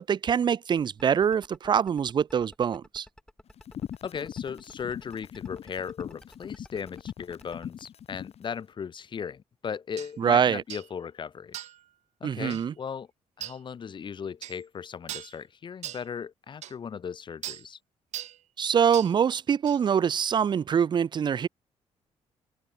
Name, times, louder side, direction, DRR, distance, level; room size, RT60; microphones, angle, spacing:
voice 1, 0.0-3.1 10.2-10.6 12.2-12.7 18.6-21.5, right 7 dB, 40° right, 0.4 m, -24 dB
sound 1, 0.8-7.7, left 1 dB, 5° left, 2.0 m, -52 dB
sound 2, 3.6-8.4, left 9 dB, 65° left, 2.8 m, -40 dB
voice 2, 4.0-11.6 12.2-13.1 13.4-17.8, left 7 dB, 45° left, 0.8 m, -37 dB
sound 3, 10.0-10.1 10.7-10.9 11.5-11.8 12.5-12.7 13.4-13.6 14.4-14.6 15.1-15.4 15.8-16.1 16.6-16.7 17.4-17.7 18.1-18.4 18.9-19.2 19.7-19.8, right 12 dB, 80° right, 1.3 m, -39 dB
cardioid pair, 95°, 12 cm